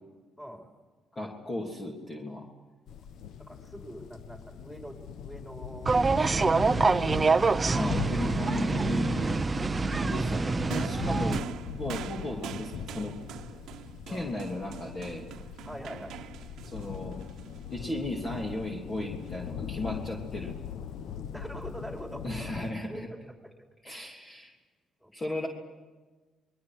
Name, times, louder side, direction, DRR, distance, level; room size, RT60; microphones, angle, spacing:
voice 1, 0.4-0.7 3.4-6.0 6.5-8.0 11.8-12.1 14.1-14.4 15.6-16.2 21.3-23.5 25.0-25.1, equal, 5° left, 1 dB, 5.1 m, -44 dB
voice 2, 1.1-2.5 7.7-9.5 10.0-11.4 11.7-13.2 14.1-15.3 16.6-17.2 17.7-20.6 22.2-23.1 23.8-24.5 25.1-25.5, left 1 dB, 30° left, 0 dB, 3.3 m, -35 dB
sound 1, 2.9-22.7, left 8 dB, 75° left, 0.9 m, -40 dB
sound 2, 5.9-11.4, right 4 dB, 30° right, 0.7 m, -26 dB
sound 3, 10.7-18.2 19.2-19.3, right 9 dB, 85° right, 1.1 m, -44 dB
29.0 x 22.0 x 6.3 m, 1.3 s
cardioid pair, 90°, 0 cm